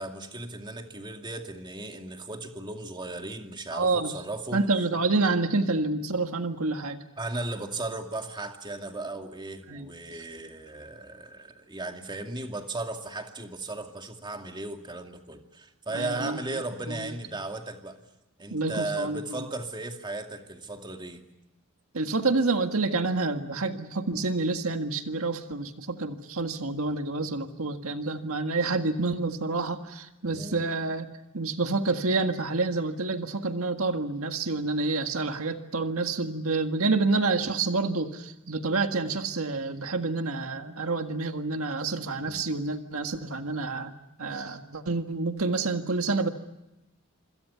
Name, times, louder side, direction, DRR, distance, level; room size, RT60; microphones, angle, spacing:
voice 1, 0.0-4.6 7.2-18.0 18.4-21.2 30.2-30.6 42.1-42.4, right 2 dB, 20° right, 4 dB, 2.4 m, -36 dB
voice 2, 3.7-4.2 4.5-7.0 9.7-9.9 15.9-16.4 16.9-17.1 18.5-19.4 21.9-43.9 44.2-46.3, right 3 dB, 75° right, 6 dB, 1.8 m, -28 dB
27.0 x 26.0 x 7.0 m, 0.93 s
head